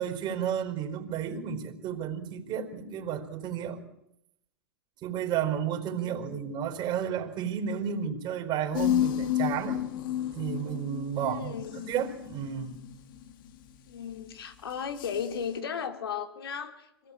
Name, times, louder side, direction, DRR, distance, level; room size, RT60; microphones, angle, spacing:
voice 1, 0.0-3.8 5.0-9.8 10.3-12.8, right 8 dB, 35° right, 5 dB, 4.7 m, -32 dB
voice 2, 5.8-6.4 11.2-11.8 13.9-17.1, left 7 dB, 75° left, 6 dB, 3.5 m, -36 dB
sound 1, 8.7-13.3 15.0-15.4, left 12 dB, 60° left, 2.1 m, -31 dB
26.0 x 18.5 x 8.9 m, 0.82 s
hypercardioid pair, 105°, 13 cm